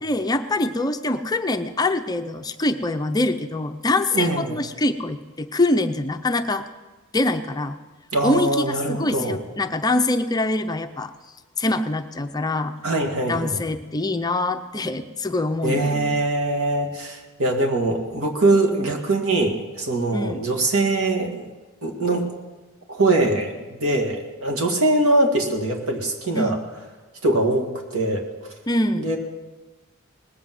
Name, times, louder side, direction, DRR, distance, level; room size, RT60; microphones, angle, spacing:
voice 1, 0.0-6.7 7.1-7.8 8.2-11.1 11.6-12.7 13.3-16.2 20.1-20.4 26.3-26.6 28.7-29.1, left 2 dB, 20° left, 7 dB, 0.5 m, -24 dB
voice 2, 4.1-4.6 8.1-9.4 12.8-13.6 15.6-21.5 21.8-22.2 22.9-26.6 27.2-28.2 29.0-29.2, right 2 dB, 75° right, 2 dB, 2.1 m, -22 dB
19.0 x 8.0 x 7.6 m, 1.2 s
head